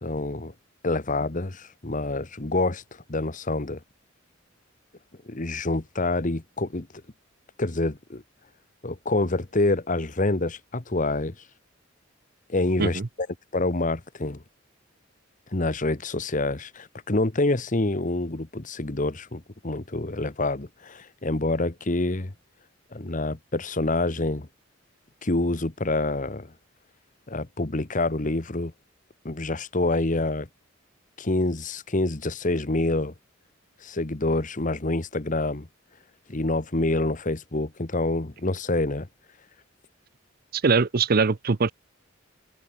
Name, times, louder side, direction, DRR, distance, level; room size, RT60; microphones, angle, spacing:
voice 1, 0.0-0.5 0.8-3.8 5.2-6.9 7.6-8.2 8.8-11.3 12.5-13.3 13.5-14.4 15.5-22.3 22.9-24.5 25.2-26.5 27.3-28.7 29.2-30.5 31.2-33.1 33.8-35.7 36.3-39.1, left 2 dB, 40° left, 1.2 m, -27 dB
voice 2, 40.5-41.7, right 4 dB, 50° right, 0.6 m, -22 dB
open air
head